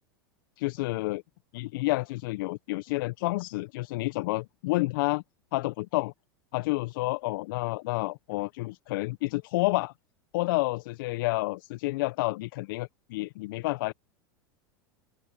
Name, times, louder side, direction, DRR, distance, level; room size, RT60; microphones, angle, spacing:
voice 1, 0.6-1.2 1.5-5.2 5.5-6.1 6.5-9.9 10.3-13.9, left 21 dB, 60° left, 1.4 m, -29 dB
open air
hypercardioid pair, 90°, 12 cm